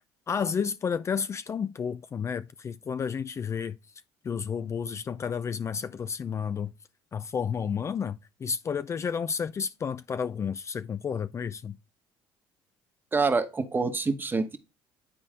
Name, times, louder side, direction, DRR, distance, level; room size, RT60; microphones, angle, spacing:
voice 1, 0.3-3.8 4.2-6.7 7.1-11.8, left 6 dB, 35° left, 0.4 m, -31 dB
voice 2, 13.1-14.6, right 4 dB, 25° right, 1.2 m, -26 dB
10.0 x 4.0 x 3.7 m
supercardioid pair, 85°, 9 cm